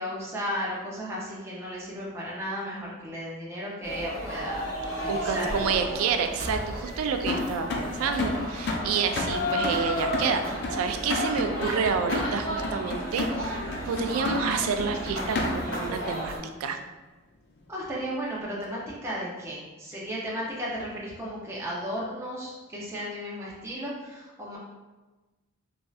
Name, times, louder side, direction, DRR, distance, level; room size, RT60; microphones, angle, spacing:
voice 1, 0.0-5.6 14.0-14.4 17.7-24.6, equal, 10° right, -6 dB, 0.5 m, -35 dB
sound 1, 3.8-16.4, equal, 75° left, 1.1 m, -33 dB
voice 2, 5.1-16.3 16.6-16.8, right 6 dB, 85° right, 8 dB, 0.3 m, -29 dB
sound 2, 7.3-15.9, left 2 dB, 50° left, 0.4 m, -32 dB
3.1 x 2.6 x 2.3 m, 1.2 s
head